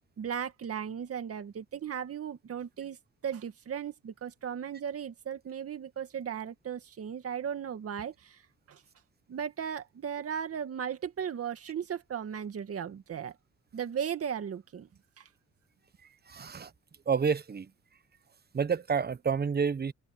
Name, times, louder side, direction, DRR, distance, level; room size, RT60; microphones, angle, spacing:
voice 1, 0.2-3.0 3.2-8.4 8.7-8.8 9.3-13.4 13.7-14.9 15.2-15.3, right 8 dB, 50° right, 2.0 m, -36 dB
voice 2, 16.3-16.7 17.1-17.7 18.5-19.9, right 6 dB, 30° right, 1.2 m, -29 dB
cardioid pair, 90°, 30 cm